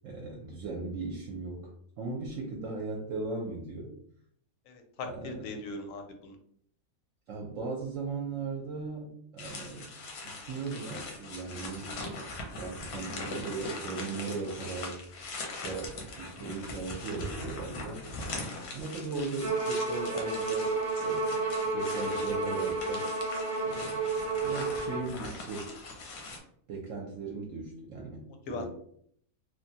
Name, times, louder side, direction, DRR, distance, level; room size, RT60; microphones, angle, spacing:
voice 1, 0.0-4.0 5.0-5.5 7.3-9.9 10.2-11.9 12.6-15.0 15.6-18.0 18.7-21.4 21.7-23.1 23.6-24.1 24.4-25.7 26.7-28.6, right 3 dB, 70° right, -2 dB, 0.9 m, -38 dB
voice 2, 4.7-6.4 28.5-28.6, left 3 dB, 70° left, 5 dB, 0.9 m, -39 dB
sound 1, 9.4-26.4, left 2 dB, 85° left, 1.2 m, -41 dB
Bowed string instrument, 19.4-25.1, right 3 dB, 40° right, 0.4 m, -31 dB
3.1 x 2.2 x 2.7 m, 0.65 s
omnidirectional pair, 1.5 m